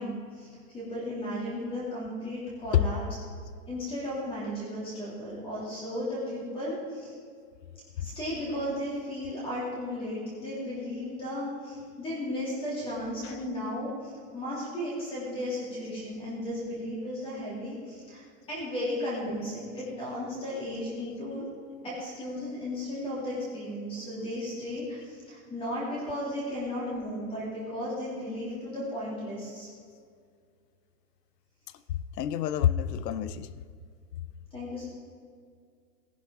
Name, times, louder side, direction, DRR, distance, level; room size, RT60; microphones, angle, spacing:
voice 1, 0.0-3.0 3.7-7.1 7.9-18.2 18.5-21.5 21.8-29.7 34.5-34.8, left 1 dB, 10° left, -7 dB, 2.8 m, -35 dB
voice 2, 32.2-33.5, left 10 dB, 85° left, 15 dB, 0.8 m, -27 dB
18.0 x 10.5 x 3.7 m, 2.1 s
supercardioid pair, 170°, 47 cm